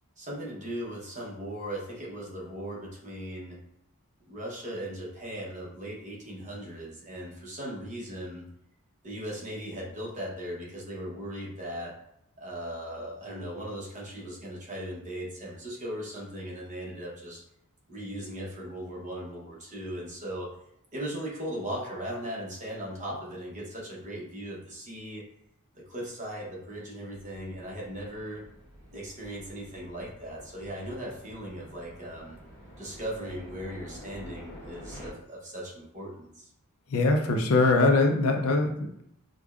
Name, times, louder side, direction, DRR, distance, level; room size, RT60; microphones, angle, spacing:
voice 1, 0.2-3.6 4.3-8.4 9.0-12.0 12.4-17.4 17.9-20.5 20.9-25.2 25.7-28.5 28.9-32.4 32.8-36.5, equal, 35° right, -3 dB, 0.9 m, -38 dB
sound 1, 27.1-35.1, equal, 10° left, 1.1 m, -49 dB
voice 2, 36.9-39.0, left 3 dB, 65° left, 3 dB, 0.5 m, -22 dB
5.1 x 2.2 x 2.4 m, 0.75 s
head